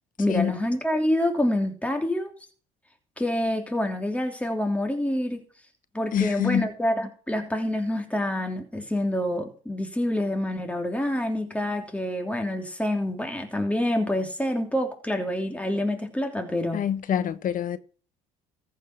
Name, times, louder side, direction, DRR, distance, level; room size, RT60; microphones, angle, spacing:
voice 1, 0.2-2.3 3.2-5.4 5.9-16.8, left 1 dB, 5° left, 3.2 m, -27 dB
voice 2, 6.1-6.7 16.7-17.8, left 9 dB, 50° left, 1.0 m, -25 dB
14.5 x 5.6 x 5.9 m
supercardioid pair, 75°, 18 cm